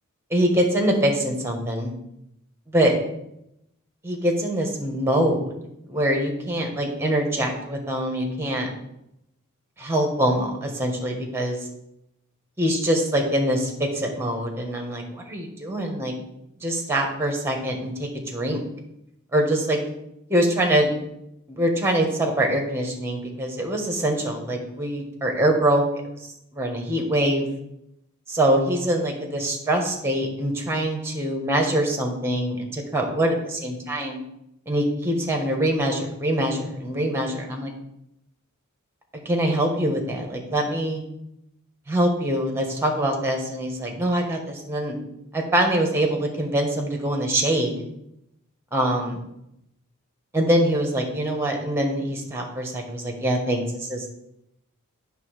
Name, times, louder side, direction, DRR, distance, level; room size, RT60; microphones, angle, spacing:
voice 1, 0.3-1.9 2.7-2.9 4.0-5.5 5.9-8.7 9.8-11.6 12.6-16.1 16.6-18.6 19.3-19.8 20.3-20.9 21.5-25.8 26.5-27.5 28.3-34.2 34.7-37.7 39.2-41.0 41.9-45.0 45.3-47.7 48.7-49.2 50.3-54.1, right 1 dB, 10° right, 2 dB, 1.3 m, -24 dB
8.8 x 3.4 x 6.4 m, 0.81 s
head